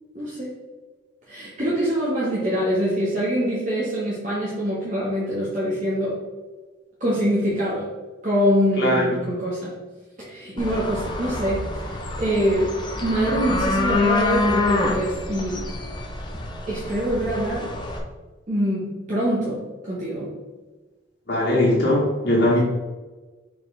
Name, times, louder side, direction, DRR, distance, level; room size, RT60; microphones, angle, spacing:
voice 1, 0.1-0.6 1.3-6.2 7.0-7.9 8.2-9.8 10.2-15.7 16.7-17.7 18.5-20.4, equal, 40° right, -9 dB, 1.7 m, -24 dB
sound 1, 10.6-18.0, left 2 dB, 25° left, 0.9 m, -26 dB
voice 2, 21.3-22.6, left 1 dB, 55° left, -5 dB, 1.5 m, -20 dB
6.6 x 4.5 x 3.4 m, 1.2 s
head